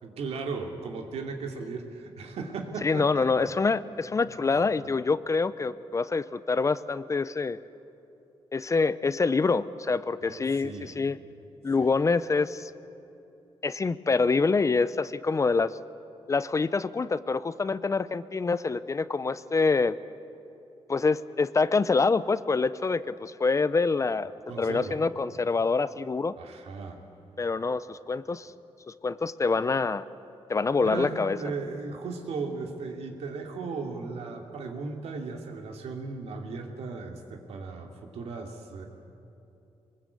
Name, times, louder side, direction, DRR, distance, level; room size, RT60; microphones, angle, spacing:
voice 1, 0.0-3.5 4.5-4.6 10.2-11.1 11.8-11.9 24.5-25.0 26.4-27.0 30.8-38.9, right 4 dB, 85° right, 3 dB, 2.7 m, -36 dB
voice 2, 2.8-7.6 8.5-11.2 11.6-12.7 13.6-15.8 16.3-20.0 20.9-24.3 24.6-26.3 27.4-28.5 28.9-30.1 30.5-31.4, left 4 dB, 30° left, 16 dB, 0.6 m, -26 dB
23.5 x 21.5 x 8.4 m, 2.9 s
cardioid pair, 105°, 10 cm